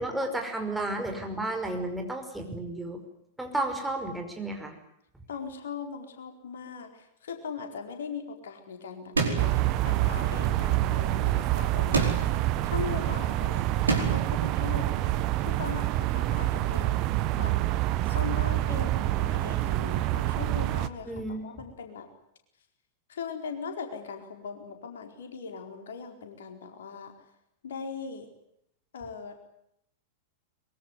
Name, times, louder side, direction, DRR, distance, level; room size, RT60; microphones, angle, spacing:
voice 1, 0.0-3.0 3.4-4.8 21.1-21.4, right 2 dB, 5° right, 3 dB, 5.5 m, -32 dB
voice 2, 5.3-9.6 9.8-12.3 12.6-15.0 15.5-17.1 17.3-17.6 18.0-22.1 23.1-27.1 27.6-28.3 28.9-29.5, left 5 dB, 60° left, 5 dB, 4.4 m, -39 dB
sound 1, 9.1-9.7 11.9-12.4 13.9-14.4, right 4 dB, 75° right, 4.8 m, -27 dB
sound 2, 9.4-20.9, right 15 dB, 40° right, 1.4 m, -27 dB
24.0 x 23.0 x 9.6 m, 0.77 s
figure-of-eight pair, 95°, 0 cm